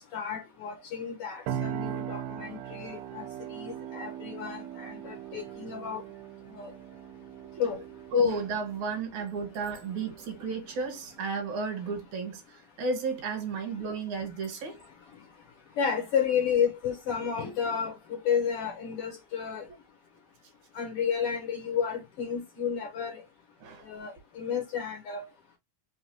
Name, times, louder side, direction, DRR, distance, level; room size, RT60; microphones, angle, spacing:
voice 1, 0.1-6.0 6.6-6.7 7.6-7.8 15.8-19.7 20.7-23.2 23.8-25.3, left 7 dB, 70° left, 1.4 m, -31 dB
sound 1, 1.5-11.2, right 10 dB, 90° right, 2.4 m, -40 dB
voice 2, 8.1-12.4 12.8-14.7 23.6-23.8, right 1 dB, 65° right, 2.5 m, -32 dB
5.7 x 2.3 x 2.8 m
omnidirectional pair, 3.9 m